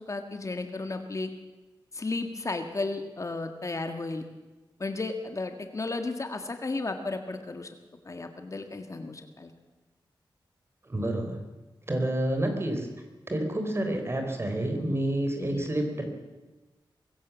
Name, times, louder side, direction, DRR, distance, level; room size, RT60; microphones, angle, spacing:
voice 1, 0.1-1.3 1.9-4.2 4.8-7.7 8.0-9.5 15.4-15.7, left 3 dB, 40° left, 7 dB, 1.7 m, -34 dB
voice 2, 10.8-11.4 11.9-12.9 13.3-16.0, right 1 dB, 30° right, 4 dB, 4.2 m, -29 dB
23.5 x 15.5 x 7.2 m, 1.2 s
wide cardioid pair, 100°, 8 cm